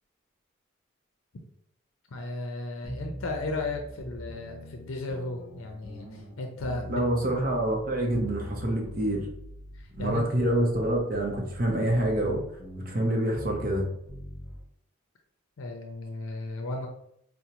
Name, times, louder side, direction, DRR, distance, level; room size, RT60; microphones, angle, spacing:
voice 1, 2.1-7.1 9.8-10.2 15.6-16.9, left 2 dB, 80° left, 3 dB, 0.5 m, -35 dB
sound 1, 2.8-14.6, equal, 25° left, 1.2 m, -42 dB
voice 2, 6.9-9.3 10.0-12.4 12.7-13.9, right 1 dB, 45° right, 0 dB, 0.6 m, -26 dB
4.8 x 2.1 x 2.8 m, 0.72 s
head